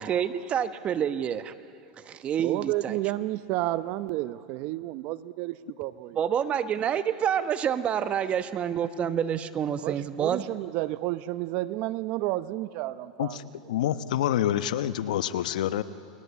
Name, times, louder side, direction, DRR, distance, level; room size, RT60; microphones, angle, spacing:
voice 1, 0.0-1.5 2.0-3.0 6.1-10.4, right 8 dB, 30° right, 11 dB, 1.1 m, -28 dB
voice 2, 2.4-6.2 9.8-13.4, right 17 dB, 50° right, 14 dB, 0.8 m, -31 dB
voice 3, 13.7-15.8, left 11 dB, 75° left, 12 dB, 1.0 m, -27 dB
29.5 x 20.5 x 8.4 m, 2.6 s
hypercardioid pair, 120°, 4 cm